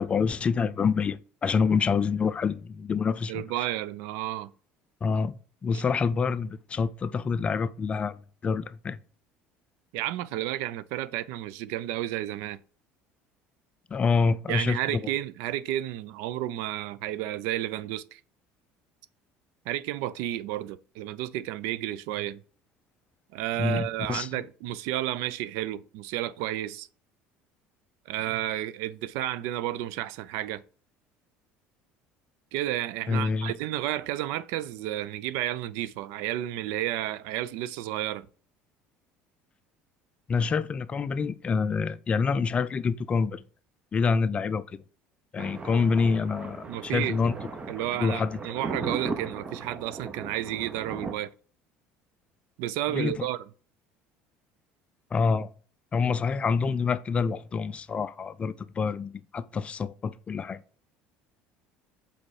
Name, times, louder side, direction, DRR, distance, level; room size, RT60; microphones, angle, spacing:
voice 1, 0.0-3.4 5.0-5.3 5.6-9.0 13.9-15.0 23.6-24.4 33.1-33.5 40.3-43.4 43.9-44.8 45.3-47.3 48.0-48.4 52.9-53.3 55.1-55.5 55.9-60.6, left 5 dB, 25° left, 0.4 m, -27 dB
voice 2, 3.3-4.5 9.9-12.6 14.5-18.2 19.7-22.4 23.3-26.9 28.1-30.6 32.5-38.3 46.7-47.3 47.7-51.3 52.6-53.4, right 13 dB, 80° right, 0.4 m, -32 dB
Thunder, 45.4-51.1, right 4 dB, 25° right, 0.7 m, -37 dB
5.2 x 4.2 x 4.8 m
cardioid pair, 120°, 4 cm